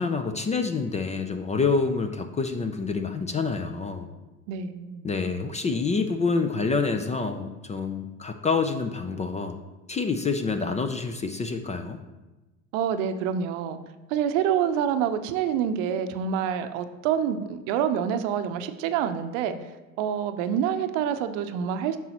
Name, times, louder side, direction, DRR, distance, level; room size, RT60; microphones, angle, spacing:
voice 1, 0.0-4.1 5.0-9.6 9.9-12.0, left 4 dB, 20° left, 7 dB, 0.4 m, -27 dB
voice 2, 4.5-5.1 12.7-13.8 14.1-19.5 20.0-22.0, right 8 dB, 65° right, 10 dB, 0.7 m, -27 dB
9.0 x 6.1 x 2.9 m, 1.1 s
hypercardioid pair, 80°, 41 cm